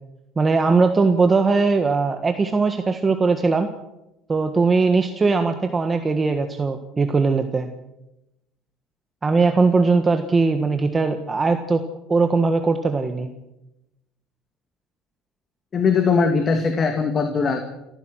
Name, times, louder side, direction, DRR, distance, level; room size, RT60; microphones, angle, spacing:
voice 1, 0.4-3.7 4.3-7.7 9.2-11.8 12.1-13.3, right 4 dB, 20° right, 7 dB, 1.5 m, -20 dB
voice 2, 15.7-17.6, left 5 dB, 35° left, 6 dB, 2.2 m, -20 dB
28.5 x 14.5 x 6.4 m, 0.92 s
cardioid pair, 120°, 0 cm